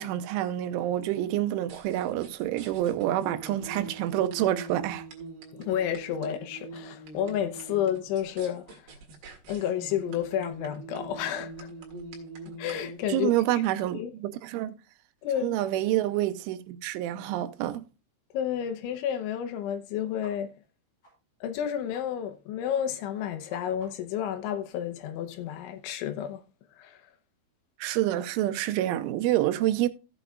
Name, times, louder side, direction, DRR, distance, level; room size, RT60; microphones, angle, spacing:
voice 1, 0.0-5.1 13.1-14.8 15.4-17.9 27.8-29.9, right 13 dB, 85° right, 3.1 m, -27 dB
sound 1, 1.7-13.0, right 3 dB, 65° right, 3.6 m, -43 dB
voice 2, 5.5-8.8 9.5-11.7 12.6-13.6 13.9-14.1 15.2-15.6 18.3-20.5 21.4-26.4 26.8-27.0, left 10 dB, 80° left, 3.2 m, -31 dB
sound 2, 20.2-20.3 20.6-20.7 21.0-21.1 21.5-21.6 21.9-22.0 22.3-22.4 22.7-22.8 23.1-24.2, left 1 dB, 25° left, 6.3 m, -55 dB
15.5 x 8.0 x 2.4 m
omnidirectional pair, 5.6 m